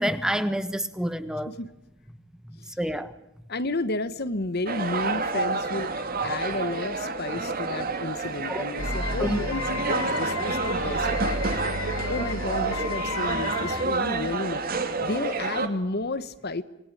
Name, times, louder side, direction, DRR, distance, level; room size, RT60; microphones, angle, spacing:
voice 1, 0.0-1.5 2.8-3.1 8.5-8.6 9.2-9.4, equal, 5° right, 1.3 m, -27 dB
voice 2, 3.5-5.9 6.2-11.7 12.1-16.6, left 2 dB, 50° left, 1.2 m, -32 dB
sound 1, 4.7-15.7, right 3 dB, 45° right, 2.5 m, -29 dB
sound 2, 8.8-13.8, left 2 dB, 80° left, 5.5 m, -32 dB
27.0 x 21.0 x 10.0 m
head